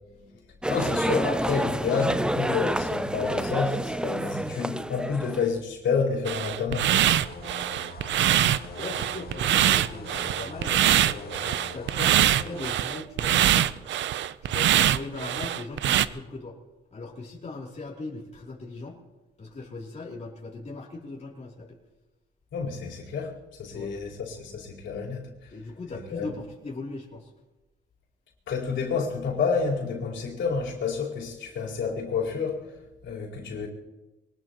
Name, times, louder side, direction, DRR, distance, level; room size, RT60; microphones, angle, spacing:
sound 1, 0.6-5.5, right 1 dB, 5° right, 0.5 m, -28 dB
voice 1, 0.7-7.1 22.5-25.5 25.9-26.3 28.5-32.7 33.0-33.7, left 5 dB, 75° left, 4.4 m, -29 dB
sound 2, 6.3-16.1, right 11 dB, 70° right, 0.6 m, -23 dB
sound 3, 7.2-12.7, left 5 dB, 50° left, 2.3 m, -43 dB
voice 2, 8.7-13.8 14.4-16.6 16.9-19.0 19.4-21.8 23.7-23.9 25.5-27.3, left 3 dB, 35° left, 3.1 m, -39 dB
23.5 x 19.5 x 3.0 m
cardioid pair, 90°, 20 cm